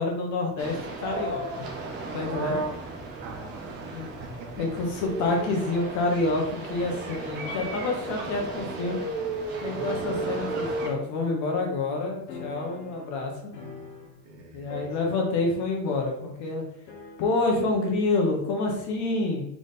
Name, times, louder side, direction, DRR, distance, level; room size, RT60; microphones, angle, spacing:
voice 1, 0.0-1.7 2.1-2.6 3.9-4.0 4.6-9.0 9.6-13.5 14.5-16.6 17.2-19.4, left 3 dB, 35° left, 1 dB, 0.9 m, -28 dB
sound 1, 0.6-10.9, right 3 dB, 20° right, 0.5 m, -34 dB
voice 2, 3.2-4.8 12.8-12.9 13.6-13.9 14.2-15.4, right 3 dB, 80° right, 1 dB, 1.4 m, -46 dB
sound 2, 12.3-14.4 14.7-15.7 15.9-16.0 16.9-17.7, left 5 dB, 85° left, 1.3 m, -43 dB
3.6 x 3.5 x 4.0 m, 0.78 s
supercardioid pair, 165°, 50 cm